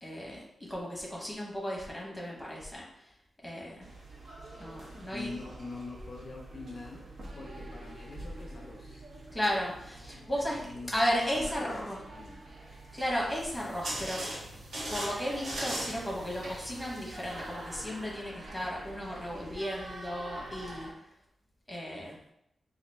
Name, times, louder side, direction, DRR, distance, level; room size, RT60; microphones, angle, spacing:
voice 1, 0.0-3.1 3.4-3.9 4.6-5.3 9.3-10.6 10.9-12.0 12.9-14.2 14.9-20.9 21.7-22.2, equal, ahead, -4 dB, 1.0 m, -34 dB
sound 1, 3.8-20.9, right 1 dB, 65° right, 0.8 m, -47 dB
voice 2, 5.1-7.1 7.4-9.0 10.1-11.0 11.3-12.4, left 3 dB, 45° left, 0 dB, 0.4 m, -44 dB
sound 2, 13.4-17.8, right 1 dB, 85° right, 1.2 m, -39 dB
3.9 x 2.4 x 3.3 m, 0.79 s
wide cardioid pair, 160°, 0 cm